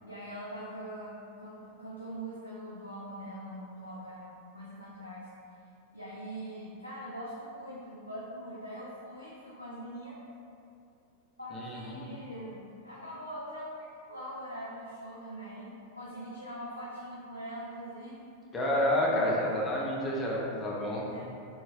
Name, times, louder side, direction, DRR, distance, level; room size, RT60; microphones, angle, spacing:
voice 1, 0.1-4.3 4.5-5.3 5.9-10.2 11.4-13.7 14.1-18.2 19.1-19.7 21.1-21.2, right 1 dB, 90° right, -7 dB, 0.3 m, -42 dB
voice 2, 11.5-12.1 18.5-21.1, left 1 dB, 20° left, -5 dB, 0.6 m, -29 dB
2.9 x 2.7 x 2.3 m, 2.6 s
figure-of-eight pair, 90°, 0 cm